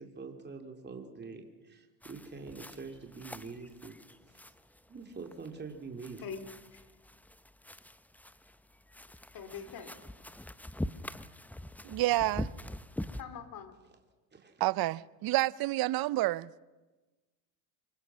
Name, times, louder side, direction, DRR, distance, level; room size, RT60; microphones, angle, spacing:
voice 1, 0.0-3.9 4.3-4.5 4.9-6.2 14.3-14.6, right 4 dB, 20° right, 3.2 m, -45 dB
sound 1, 2.0-13.2, left 1 dB, 5° left, 0.7 m, -44 dB
voice 2, 9.3-9.9 13.2-13.7, left 7 dB, 50° left, 2.9 m, -43 dB
voice 3, 11.8-12.5 14.6-16.5, right 17 dB, 55° right, 0.7 m, -29 dB
25.5 x 23.0 x 6.3 m
supercardioid pair, 85°, 45 cm